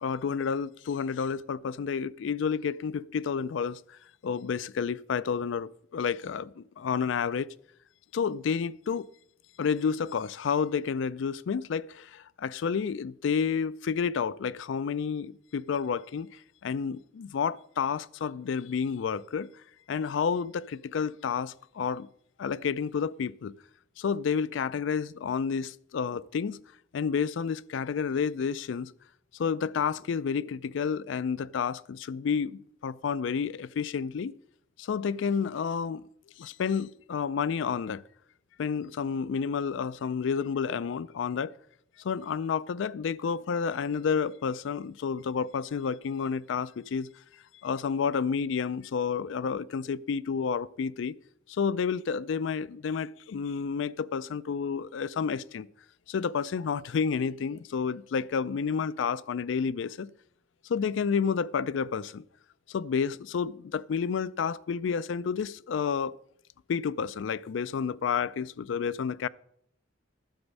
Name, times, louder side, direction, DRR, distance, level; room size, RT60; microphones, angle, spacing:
voice 1, 0.0-4.0 4.2-7.5 8.1-9.1 9.6-16.3 16.6-19.5 19.9-22.1 22.4-23.5 24.0-26.6 26.9-28.9 29.4-34.3 34.8-36.0 36.4-38.0 38.6-41.5 42.0-47.1 47.6-51.2 51.5-55.7 56.1-60.1 60.7-62.2 62.7-66.1 66.7-69.3, left 6 dB, 70° left, 0.4 m, -30 dB
11.5 x 7.0 x 5.4 m
head